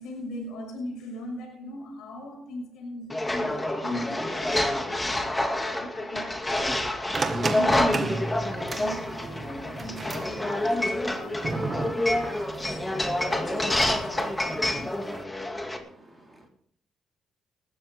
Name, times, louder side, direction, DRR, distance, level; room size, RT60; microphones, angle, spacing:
voice 1, 0.0-6.8 7.4-14.6, left 1 dB, 85° left, 1 dB, 5.9 m, -40 dB
sound 1, 3.1-15.8, left 1 dB, 15° left, 2.4 m, -28 dB
sound 2, 7.1-15.2, right 3 dB, 35° right, 1.9 m, -35 dB
voice 2, 15.7-16.5, right 1 dB, 15° right, -5 dB, 4.4 m, -54 dB
19.5 x 13.5 x 3.7 m, 0.65 s
cardioid pair, 90°, 0 cm